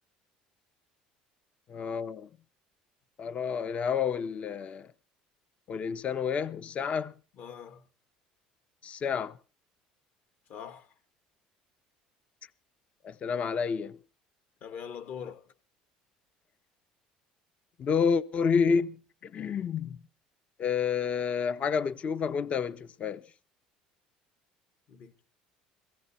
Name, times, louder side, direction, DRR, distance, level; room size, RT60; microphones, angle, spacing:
voice 1, 1.7-2.3 3.2-4.9 5.7-7.1 8.8-9.3 13.0-14.0 17.8-20.0 20.6-23.2, left 6 dB, 40° left, 0.8 m, -29 dB
voice 2, 7.3-7.9 10.5-10.9 14.6-15.5 19.2-19.4 24.9-25.2, left 7 dB, 60° left, 1.5 m, -43 dB
17.0 x 16.0 x 4.2 m
supercardioid pair, 85°, 3 cm